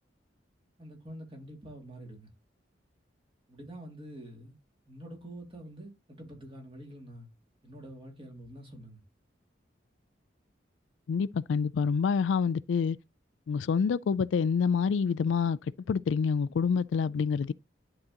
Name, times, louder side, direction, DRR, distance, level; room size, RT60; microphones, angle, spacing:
voice 1, 0.8-2.3 3.5-4.6 4.9-7.3 7.6-9.0, right 1 dB, 30° right, 2.4 m, -46 dB
voice 2, 11.1-13.0 13.5-15.6 15.9-17.5, left 6 dB, 85° left, 0.3 m, -27 dB
11.0 x 3.9 x 2.9 m
head